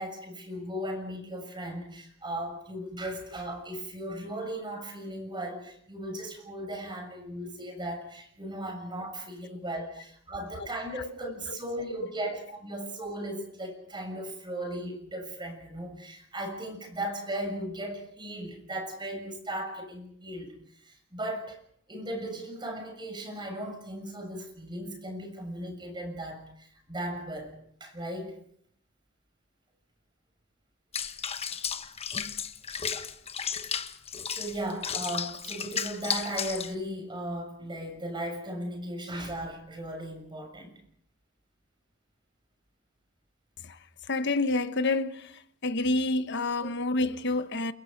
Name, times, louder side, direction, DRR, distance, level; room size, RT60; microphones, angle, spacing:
voice 1, 0.0-20.5 20.8-21.6 21.9-27.5 27.8-28.4 34.3-40.7 46.6-46.7, right 1 dB, 25° right, 6.8 m, -37 dB
Water / Bathtub (filling or washing), 30.9-36.7, left 7 dB, 30° left, 1.1 m, -34 dB
voice 2, 44.1-45.3 45.6-47.7, left 2 dB, 60° left, 1.3 m, -28 dB
29.0 x 22.0 x 5.4 m
head